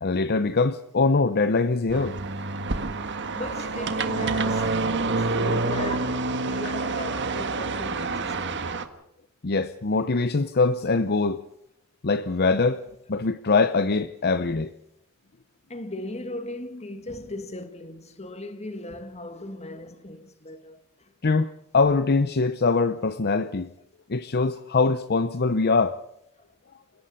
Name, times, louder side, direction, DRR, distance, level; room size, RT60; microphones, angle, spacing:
voice 1, 0.0-2.2 9.4-11.4 12.0-12.8 13.1-14.7 21.2-23.7 24.1-26.0, left 4 dB, 50° left, 0.7 m, -23 dB
sound 1, 1.9-8.8, right 3 dB, 55° right, 1.7 m, -27 dB
voice 2, 2.7-8.9 15.7-21.1 26.4-26.5, left 1 dB, 30° left, 1.8 m, -38 dB
29.5 x 17.5 x 5.6 m
head